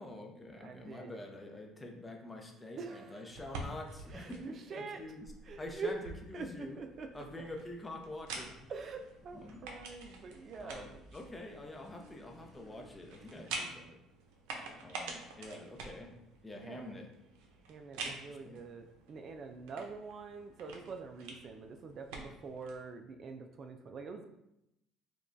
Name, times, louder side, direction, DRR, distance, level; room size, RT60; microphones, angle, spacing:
voice 1, 0.0-5.3 5.6-6.7 7.1-8.6 9.3-9.6 10.6-14.0 14.8-16.1 16.4-17.1 18.1-18.6, left 1 dB, 15° left, 2 dB, 0.7 m, -47 dB
voice 2, 0.6-1.2 2.8-3.3 4.0-5.0 5.4-5.9 6.3-7.1 8.7-11.0 16.5-17.0 17.7-24.3, right 4 dB, 45° right, 5 dB, 0.4 m, -45 dB
sound 1, 3.3-22.8, right 3 dB, 90° right, 0.6 m, -48 dB
sound 2, 6.7-13.6, right 1 dB, 30° right, 1.3 m, -60 dB
5.0 x 2.3 x 2.6 m, 0.84 s
cardioid pair, 100°, 0 cm